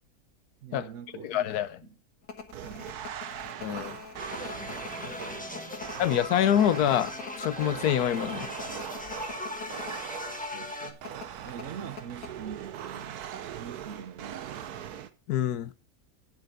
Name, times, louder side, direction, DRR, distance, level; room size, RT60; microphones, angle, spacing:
voice 1, 0.6-1.5 1.9-2.0 2.6-3.1 5.0-6.0 10.5-13.2 13.5-14.7, right 8 dB, 60° right, 1.1 m, -44 dB
voice 2, 1.2-1.7 3.6-4.0 6.0-7.1 7.4-8.6 15.3-15.7, left 10 dB, 85° left, 1.3 m, -26 dB
sound 1, 2.2-10.0 10.3-10.4 11.1-12.7 13.0-13.1, left 5 dB, 70° left, 1.7 m, -43 dB
sound 2, 2.5-10.6 11.0-15.1, right 9 dB, 85° right, 1.3 m, -41 dB
sound 3, 4.2-10.9, left 1 dB, 5° left, 1.4 m, -39 dB
9.2 x 7.9 x 5.2 m
omnidirectional pair, 1.6 m